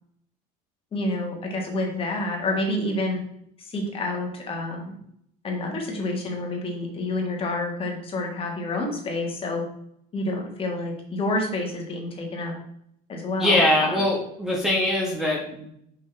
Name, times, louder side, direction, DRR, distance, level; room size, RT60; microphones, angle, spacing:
voice 1, 0.9-3.2 3.7-5.0 5.4-9.6 10.1-12.5 13.1-14.0, left 2 dB, 30° left, 1 dB, 1.6 m, -28 dB
voice 2, 13.4-15.7, left 1 dB, ahead, -5 dB, 1.2 m, -22 dB
6.0 x 5.3 x 3.4 m, 0.71 s
cardioid pair, 140°, 19 cm